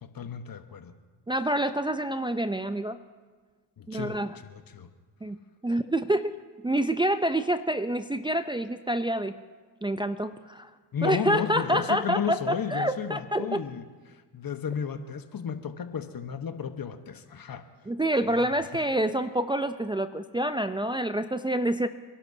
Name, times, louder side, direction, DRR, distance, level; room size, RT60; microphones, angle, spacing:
voice 1, 0.0-0.9 3.8-4.9 10.9-17.6 18.3-18.4, left 7 dB, 45° left, 8 dB, 1.3 m, -34 dB
voice 2, 1.3-3.0 3.9-4.4 5.2-5.4 5.6-6.4 6.6-9.3 9.8-10.7 11.0-13.6 17.9-21.9, right 1 dB, 10° right, 9 dB, 0.6 m, -27 dB
28.5 x 11.5 x 2.8 m, 1.4 s
supercardioid pair, 55°, 48 cm